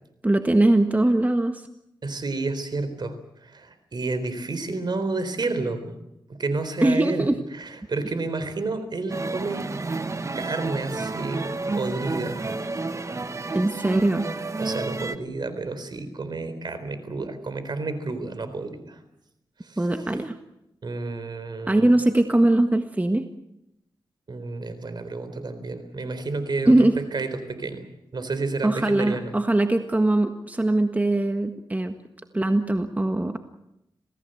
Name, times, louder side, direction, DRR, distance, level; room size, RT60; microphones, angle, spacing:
voice 1, 0.2-1.6 6.8-7.4 13.5-14.3 19.8-20.3 21.7-23.2 26.7-26.9 28.6-31.9 32.3-33.4, right 1 dB, 20° right, 6 dB, 1.6 m, -21 dB
voice 2, 2.0-3.2 3.4-6.0 6.3-9.6 10.3-11.4 11.8-12.5 14.6-19.0 19.6-19.8 20.8-21.9 24.3-27.8 28.1-29.3, right 3 dB, 55° right, 11 dB, 4.1 m, -30 dB
sound 1, 9.1-15.2, right 3 dB, 35° right, 1.3 m, -30 dB
27.0 x 18.0 x 8.0 m, 0.86 s
cardioid pair, 65°, 9 cm